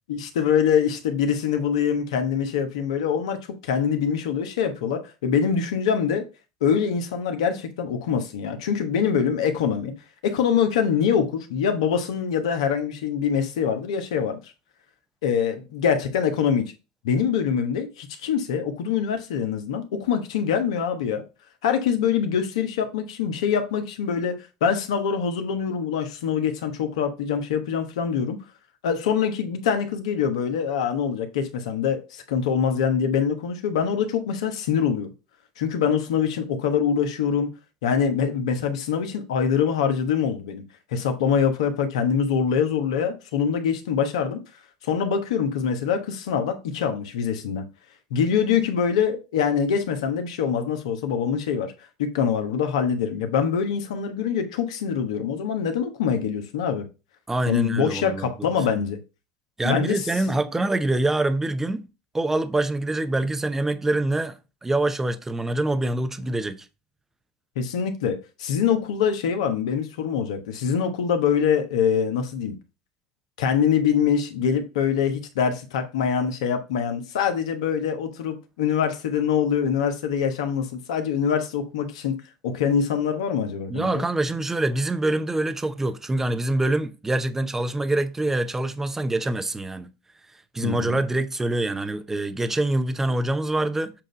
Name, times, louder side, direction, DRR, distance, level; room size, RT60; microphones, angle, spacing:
voice 1, 0.1-6.3 6.6-9.9 10.2-14.4 15.2-16.7 17.0-21.2 21.6-24.3 24.6-28.4 28.8-35.1 35.6-37.5 37.8-40.6 40.9-44.4 44.8-47.6 48.1-51.7 52.0-56.8 57.5-59.0 59.6-60.0 67.6-72.5 73.4-82.1 82.4-84.0 90.6-91.0, left 7 dB, 80° left, 1.1 m, -24 dB
voice 2, 57.3-58.8 59.6-61.9 62.1-66.6 83.7-89.9 90.5-93.9, right 2 dB, 10° right, 0.6 m, -25 dB
7.4 x 2.6 x 5.0 m
hypercardioid pair, 95°, 3 cm